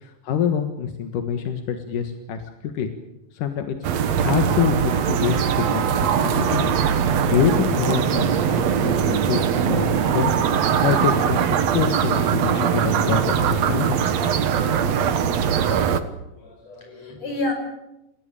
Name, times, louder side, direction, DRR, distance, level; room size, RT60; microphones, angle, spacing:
voice 1, 0.0-2.9 3.3-6.7 7.0-14.0, left 7 dB, 90° left, 6 dB, 3.2 m, -26 dB
sound 1, 3.8-16.0, right 7 dB, 60° right, 2.4 m, -21 dB
voice 2, 16.2-17.5, left 2 dB, 55° left, 4 dB, 7.0 m, -30 dB
28.0 x 17.0 x 9.0 m, 0.89 s
omnidirectional pair, 3.6 m